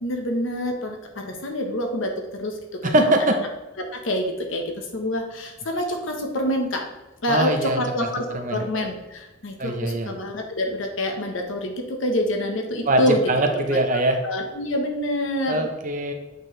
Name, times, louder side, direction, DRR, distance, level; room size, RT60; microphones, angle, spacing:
voice 1, 0.0-2.6 2.8-3.1 3.9-6.8 7.2-8.2 8.5-13.2 13.5-13.6 14.2-15.7, left 1 dB, 80° left, 3 dB, 1.1 m, -26 dB
voice 2, 2.8-3.4 7.3-7.8 8.3-8.6 9.6-10.1 12.9-13.0 13.3-14.2 15.5-16.1, right 1 dB, 40° right, 4 dB, 0.8 m, -22 dB
8.0 x 4.6 x 3.2 m, 1.1 s
head